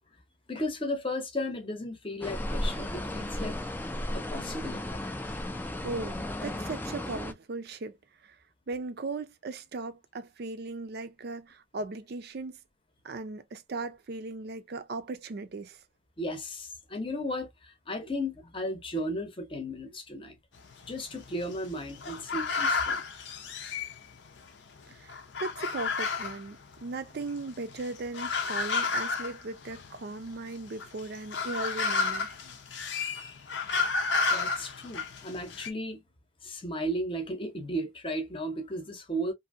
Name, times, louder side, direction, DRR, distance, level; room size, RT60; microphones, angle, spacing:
voice 1, 0.5-3.6 4.1-5.0 16.2-20.3 20.8-23.0 34.3-36.0 36.4-39.3, equal, 25° left, 0.7 m, -35 dB
sound 1, 2.2-7.3, left 1 dB, 10° left, 0.4 m, -34 dB
voice 2, 5.8-8.0 8.2-8.4 8.7-12.6 13.0-15.8 24.9-32.3, right 3 dB, 50° right, 0.4 m, -38 dB
sound 2, 20.6-24.5 24.8-35.7, left 4 dB, 60° left, 0.6 m, -32 dB
2.7 x 2.6 x 2.4 m
head